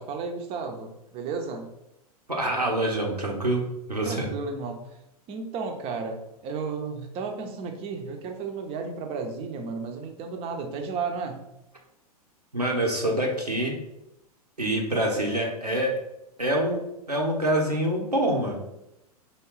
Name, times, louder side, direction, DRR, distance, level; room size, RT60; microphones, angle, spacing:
voice 1, 0.0-1.7 4.0-5.0 5.3-11.5, right 4 dB, 30° right, 4 dB, 0.6 m, -33 dB
voice 2, 2.3-4.3 12.5-13.8 14.6-15.9 16.4-18.5, right 1 dB, 90° right, 0 dB, 0.9 m, -26 dB
4.3 x 3.1 x 3.0 m, 0.87 s
figure-of-eight pair, 95°, 20 cm